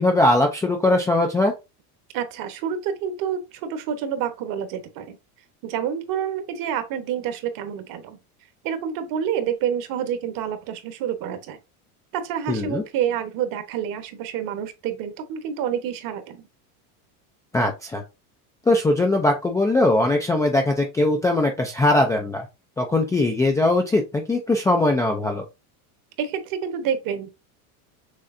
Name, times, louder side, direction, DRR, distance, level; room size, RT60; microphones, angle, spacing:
voice 1, 0.0-1.5 12.5-12.8 17.5-18.0 18.7-22.4 22.8-25.4, left 2 dB, 10° left, 0.4 m, -20 dB
voice 2, 2.1-5.2 5.6-8.2 8.6-11.6 12.1-16.4 26.2-27.3, right 8 dB, 50° right, 1.1 m, -28 dB
6.5 x 3.2 x 2.5 m
supercardioid pair, 135°, 44 cm